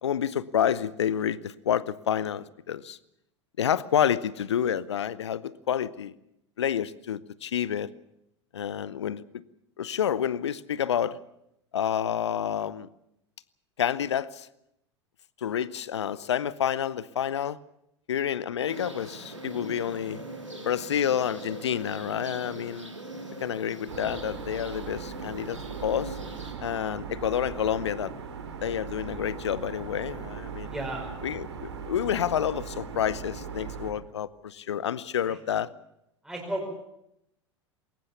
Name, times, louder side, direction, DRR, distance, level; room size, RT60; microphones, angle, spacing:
voice 1, 0.0-3.0 3.6-6.1 6.6-7.9 8.5-9.4 9.8-11.2 11.7-12.9 13.8-14.5 15.4-17.6 18.1-20.2 20.6-22.9 23.4-26.2 26.6-28.1 28.6-30.7 31.2-35.7, left 9 dB, 65° left, 20 dB, 0.8 m, -29 dB
sound 1, 18.7-26.5, right 1 dB, 90° right, 3.0 m, -41 dB
sound 2, 23.9-33.9, right 7 dB, 65° right, 2.5 m, -39 dB
voice 2, 30.7-31.1 35.2-35.4 36.2-36.7, right 1 dB, 5° right, -1 dB, 5.1 m, -34 dB
21.5 x 19.0 x 7.1 m, 0.81 s
figure-of-eight pair, 85°, 15 cm